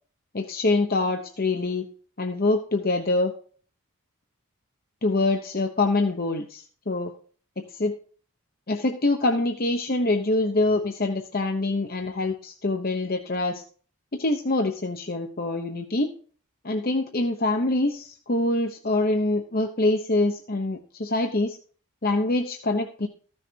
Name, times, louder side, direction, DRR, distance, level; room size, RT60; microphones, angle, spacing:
voice 1, 0.3-1.9 2.2-3.3 5.0-7.1 7.6-7.9 8.7-13.6 14.1-16.1 16.6-21.6 22.0-23.1, left 2 dB, 40° left, 4 dB, 0.9 m, -25 dB
14.0 x 6.5 x 4.5 m, 0.42 s
head